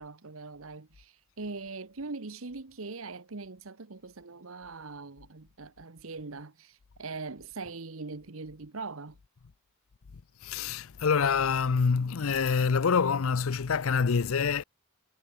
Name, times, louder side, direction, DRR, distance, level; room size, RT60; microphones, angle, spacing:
voice 1, 0.0-9.2, right 3 dB, 70° right, 1.2 m, -41 dB
voice 2, 10.4-14.6, left 5 dB, 75° left, 0.6 m, -26 dB
head